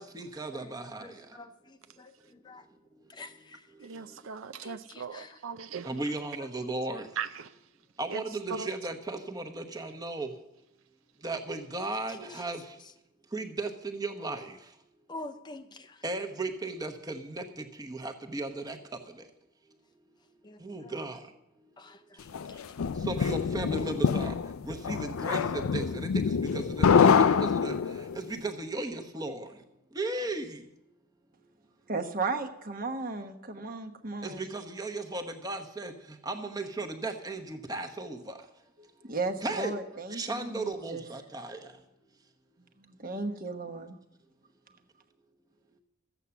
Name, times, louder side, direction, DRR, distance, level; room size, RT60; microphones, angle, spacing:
voice 1, 0.0-1.1 5.8-7.1 8.0-10.3 11.2-12.6 13.3-14.5 16.0-18.8 20.6-21.2 23.1-24.3 24.6-27.8 28.1-29.5 29.9-30.6 34.2-35.9 36.2-38.3 39.4-39.7 40.1-41.7, right 2 dB, 15° right, 1.0 m, -35 dB
voice 2, 1.0-2.7 3.1-3.7 4.6-5.4 12.1-12.4 15.1-16.0 20.4-20.9 21.8-22.3, left 2 dB, 20° left, 0.5 m, -47 dB
voice 3, 3.8-5.9 7.2-7.6 8.1-8.2 8.5-8.7, right 6 dB, 70° right, 0.5 m, -38 dB
sound 1, 22.3-28.2, left 6 dB, 80° left, 0.4 m, -25 dB
voice 4, 31.9-34.5 38.8-41.0 42.8-44.0, right 3 dB, 40° right, 1.1 m, -35 dB
13.5 x 8.2 x 7.0 m
head